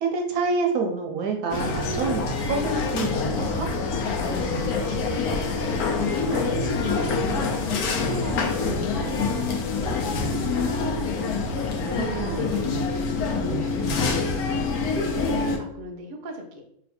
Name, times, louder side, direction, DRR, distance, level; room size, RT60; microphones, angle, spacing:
voice 1, 0.0-3.7 11.7-11.8 12.2-12.9, right 4 dB, 80° right, 3 dB, 1.2 m, -28 dB
sound 1, 1.5-15.6, left 4 dB, 85° left, 1.1 m, -26 dB
voice 2, 4.1-14.8 15.0-16.6, equal, 50° right, 2 dB, 0.6 m, -37 dB
3.1 x 2.7 x 4.2 m, 0.72 s
omnidirectional pair, 1.5 m